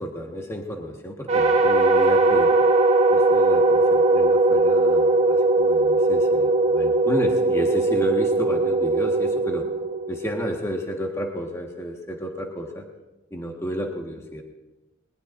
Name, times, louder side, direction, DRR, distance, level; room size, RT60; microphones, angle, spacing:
voice 1, 0.0-2.5 3.1-9.7 10.1-12.9 13.3-14.4, equal, 15° left, 1 dB, 1.5 m, -31 dB
sound 1, 1.3-10.6, right 2 dB, 30° right, 1.8 m, -19 dB
20.5 x 20.5 x 2.6 m, 1.1 s
head